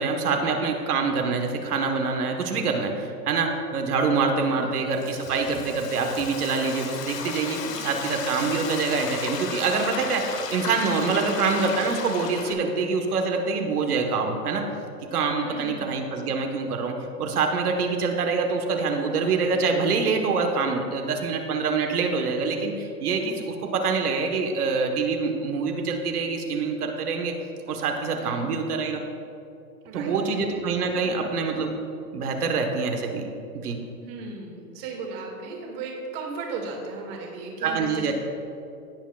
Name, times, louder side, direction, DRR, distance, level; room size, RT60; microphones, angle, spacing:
voice 1, 0.0-14.6 15.1-27.3 27.7-29.0 29.9-31.7 32.1-33.3 33.6-33.8 37.6-38.1, right 4 dB, 70° right, 3 dB, 1.4 m, -25 dB
Frying (food), 4.7-12.5, left 6 dB, 80° left, 1.3 m, -34 dB
voice 2, 7.6-7.9 11.1-11.4 15.4-15.8 28.2-28.5 29.8-30.5 31.0-31.4 34.0-38.1, right 4 dB, 40° right, 0 dB, 2.1 m, -36 dB
17.0 x 7.2 x 2.4 m, 2.6 s
hypercardioid pair, 145°, 47 cm